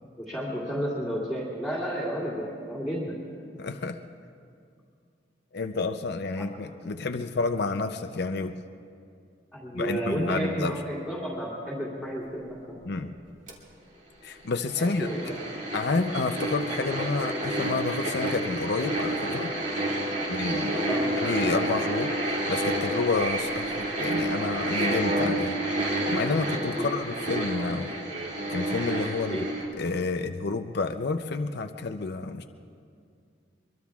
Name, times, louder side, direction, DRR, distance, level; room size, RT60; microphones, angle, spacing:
voice 1, 0.2-3.2 9.5-12.8 14.8-15.5 20.7-21.2 26.7-26.9 29.3-29.5, equal, ahead, -8 dB, 2.3 m, -32 dB
voice 2, 3.6-4.0 5.5-8.6 9.7-10.8 12.8-13.1 14.2-15.3 15.7-19.5 20.3-20.7 21.2-25.6 26.1-28.0 28.5-29.5 29.8-32.4, left 3 dB, 60° left, 6 dB, 0.6 m, -29 dB
sound 1, 13.5-13.6 14.7-29.7, right 1 dB, 45° right, 2.5 m, -29 dB
24.0 x 23.0 x 2.4 m, 2.3 s
head